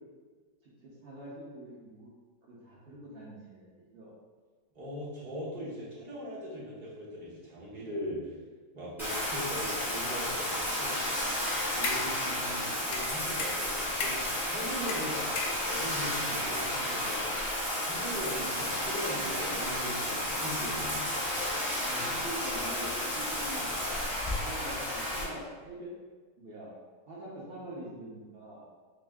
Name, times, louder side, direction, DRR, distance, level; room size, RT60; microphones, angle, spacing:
voice 1, 0.6-2.1 2.4-4.1 21.8-23.7 24.4-25.9 26.4-26.7 27.1-28.6, right 1 dB, 65° right, -6 dB, 0.5 m, -45 dB
voice 2, 4.7-8.4 8.7-11.0 11.6-15.2 15.6-17.3 17.8-21.0, equal, 35° right, -8 dB, 1.0 m, -40 dB
Bathtub (filling or washing), 9.0-25.2, left 1 dB, ahead, 0.8 m, -32 dB
sound 1, 11.4-12.2 12.9-14.4 14.9-16.0, left 4 dB, 75° left, 1.2 m, -36 dB
3.5 x 3.0 x 3.4 m, 1.4 s
omnidirectional pair, 1.9 m